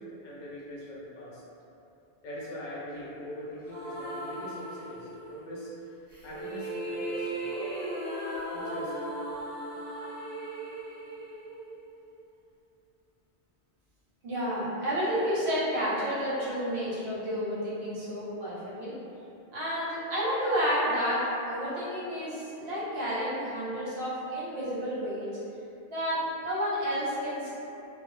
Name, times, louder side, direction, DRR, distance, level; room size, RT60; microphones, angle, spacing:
voice 1, 0.0-1.4 2.2-5.7 6.2-7.6 8.5-9.0, equal, 55° left, -6 dB, 0.6 m, -42 dB
sound 1, 3.7-5.4 6.1-12.2, right 1 dB, 10° left, 0.8 m, -37 dB
voice 2, 14.2-18.9 19.5-21.2 21.5-25.3 25.9-27.5, equal, 70° right, -8 dB, 0.9 m, -30 dB
2.1 x 2.0 x 3.0 m, 2.8 s
omnidirectional pair, 1.1 m